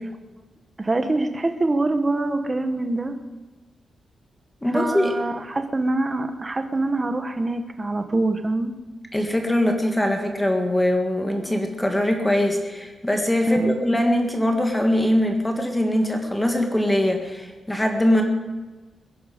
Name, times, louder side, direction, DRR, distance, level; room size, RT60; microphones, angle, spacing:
voice 1, 0.8-3.2 4.7-8.7 13.5-13.8, right 2 dB, 20° right, 7 dB, 1.0 m, -24 dB
voice 2, 4.6-5.1 9.1-18.2, left 1 dB, 10° left, 3 dB, 1.7 m, -22 dB
22.5 x 10.5 x 5.0 m, 1.2 s
wide cardioid pair, 175°, 0 cm